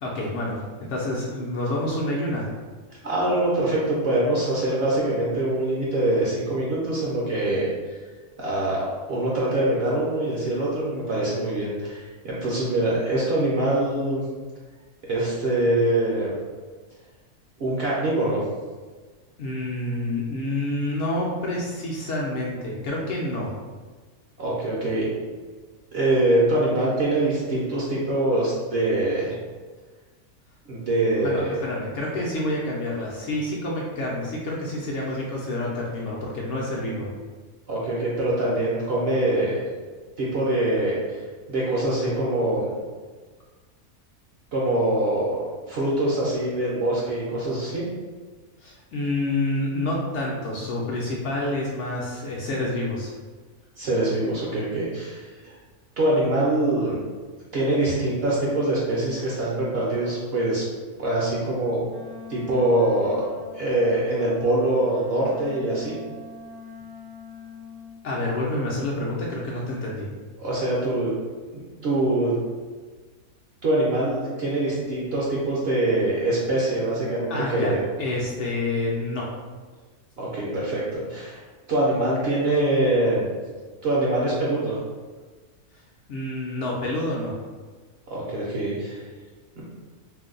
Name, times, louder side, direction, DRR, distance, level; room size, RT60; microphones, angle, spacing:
voice 1, 0.0-2.5 19.4-23.5 31.2-37.1 48.6-53.1 68.0-70.1 77.3-79.3 86.1-87.3, left 1 dB, 65° left, -4 dB, 0.8 m, -28 dB
voice 2, 3.0-7.7 8.4-14.2 15.1-16.3 17.6-18.4 24.4-25.1 25.9-29.3 30.7-31.5 37.7-39.6 40.2-41.0 41.5-42.6 44.5-45.3 45.7-47.8 53.8-55.6 56.0-57.0 57.5-60.6 61.0-61.8 62.3-63.2 63.5-66.0 70.4-71.1 71.5-72.3 73.6-77.8 80.2-81.4 81.7-83.3 83.8-84.8 88.1-89.0 89.6-89.7, right 1 dB, 60° right, -6 dB, 0.7 m, -24 dB
Wind instrument woodwind instrument, 61.9-68.0, left 5 dB, 85° right, 0.4 m, -42 dB
2.6 x 2.1 x 3.7 m, 1.4 s
omnidirectional pair, 1.5 m